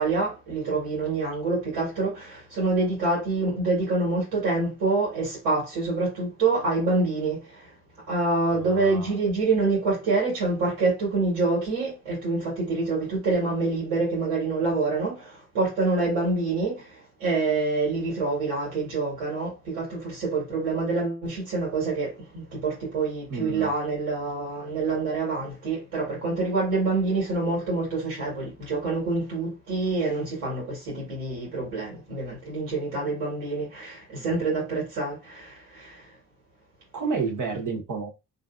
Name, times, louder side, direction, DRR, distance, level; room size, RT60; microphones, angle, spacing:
voice 1, 0.0-7.7 8.1-36.1, right 3 dB, 90° right, 1.5 m, -26 dB
voice 2, 8.7-9.1 23.3-23.7 34.1-34.4 36.9-38.1, right 5 dB, 50° right, 1.1 m, -30 dB
3.2 x 2.5 x 2.4 m
supercardioid pair, 50°, 38 cm